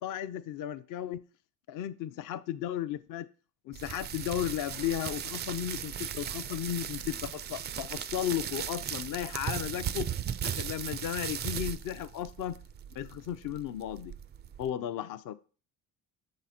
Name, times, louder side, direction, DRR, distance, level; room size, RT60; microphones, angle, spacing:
voice 1, 0.0-1.2 1.7-3.3 3.7-10.1 10.4-12.6 12.9-14.1 14.6-15.3, left 11 dB, 50° left, 0.6 m, -35 dB
sound 1, 3.7-14.7, right 9 dB, 25° right, 0.3 m, -37 dB
7.3 x 3.9 x 4.2 m
supercardioid pair, 80°, 42 cm